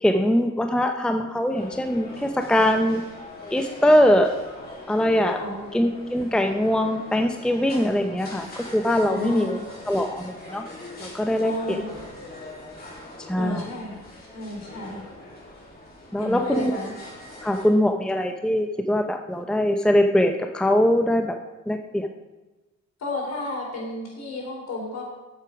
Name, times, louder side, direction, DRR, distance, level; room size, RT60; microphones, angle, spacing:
voice 1, 0.0-3.0 3.5-4.3 4.9-5.4 5.7-8.5 8.7-9.6 9.9-10.6 11.0-11.8 13.3-13.6 16.1-16.7 17.4-21.3 21.7-22.1, equal, 5° left, 5 dB, 0.7 m, -22 dB
sound 1, 1.5-17.7, left 1 dB, 30° left, 3.4 m, -42 dB
voice 2, 9.1-9.6 11.4-11.9 13.4-14.0 14.3-15.0 16.2-16.9 23.0-25.0, left 2 dB, 60° left, -1 dB, 4.2 m, -32 dB
8.2 x 7.9 x 6.1 m, 1.1 s
cardioid pair, 90°, 30 cm